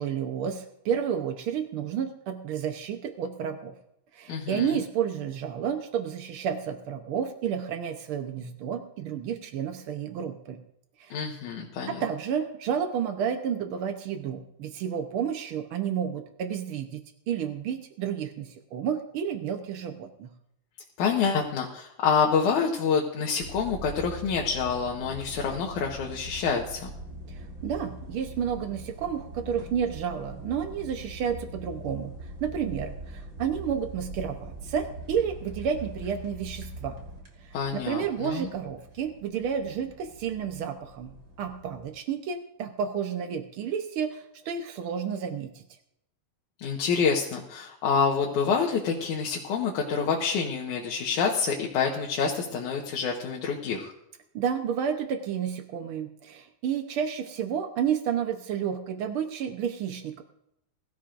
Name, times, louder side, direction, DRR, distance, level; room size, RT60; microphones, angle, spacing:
voice 1, 0.0-3.7 4.1-10.6 11.0-11.2 11.9-17.0 17.3-20.3 27.3-32.1 32.4-37.0 37.4-45.6 54.3-60.2, right 8 dB, 80° right, 6 dB, 1.2 m, -31 dB
voice 2, 4.3-4.8 11.1-12.0 21.0-26.9 37.5-38.5 46.6-53.9, left 6 dB, 70° left, -2 dB, 2.6 m, -27 dB
sound 1, 23.4-41.9, right 1 dB, 35° right, 2.6 m, -42 dB
21.0 x 14.0 x 2.6 m, 0.76 s
omnidirectional pair, 3.7 m